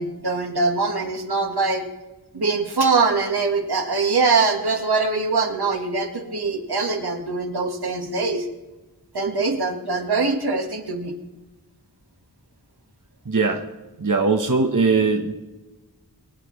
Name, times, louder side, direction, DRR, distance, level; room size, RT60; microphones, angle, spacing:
voice 1, 0.0-1.8 2.3-8.5 9.1-11.1, right 4 dB, 75° right, 2 dB, 1.7 m, -23 dB
voice 2, 13.2-13.6 14.0-15.3, right 4 dB, 50° right, 3 dB, 1.2 m, -20 dB
22.5 x 9.2 x 3.2 m, 1.1 s
wide cardioid pair, 40°, 39 cm